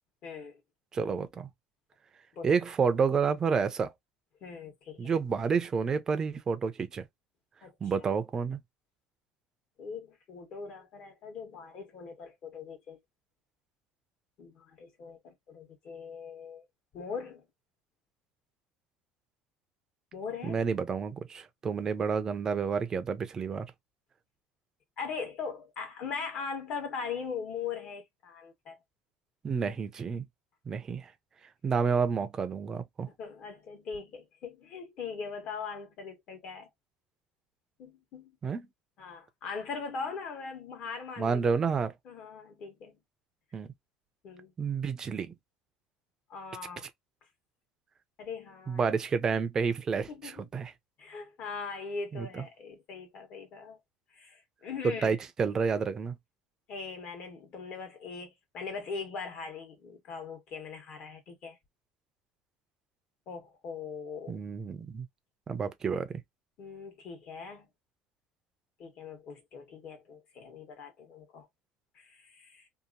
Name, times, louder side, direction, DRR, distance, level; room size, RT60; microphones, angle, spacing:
voice 1, 0.2-0.6 2.3-2.5 4.4-5.1 7.6-7.9 9.8-13.0 14.4-16.7 16.9-17.4 20.1-20.6 25.0-28.8 33.2-36.7 37.8-38.4 39.0-41.5 42.0-43.0 44.2-44.5 46.3-46.9 48.2-48.8 50.1-50.5 51.0-53.8 54.1-55.2 56.7-61.6 63.3-64.4 66.6-67.7 68.8-71.5 71.9-72.6, left 5 dB, 50° left, 1.2 m, -41 dB
voice 2, 0.9-1.5 2.4-3.9 5.0-7.1 7.8-8.6 20.4-23.7 29.4-30.3 30.7-31.1 31.6-33.1 38.4-38.7 41.2-41.9 43.5-43.7 44.6-45.3 48.7-50.7 52.1-52.4 54.8-56.1 64.3-65.1 65.5-66.2, right 5 dB, 25° right, 0.5 m, -29 dB
2.8 x 2.5 x 2.5 m
cardioid pair, 150°, 3 cm